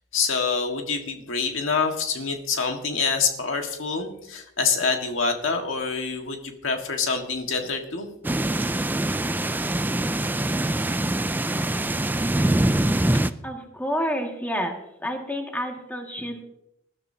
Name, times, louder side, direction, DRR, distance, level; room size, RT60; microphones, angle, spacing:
voice 1, 0.1-8.1, left 5 dB, 80° left, 3 dB, 1.7 m, -26 dB
sound 1, 8.2-13.3, right 1 dB, 10° right, 0.4 m, -24 dB
voice 2, 13.4-14.7 15.0-16.4, equal, 10° left, 1 dB, 2.0 m, -29 dB
20.0 x 12.0 x 2.8 m, 0.82 s
head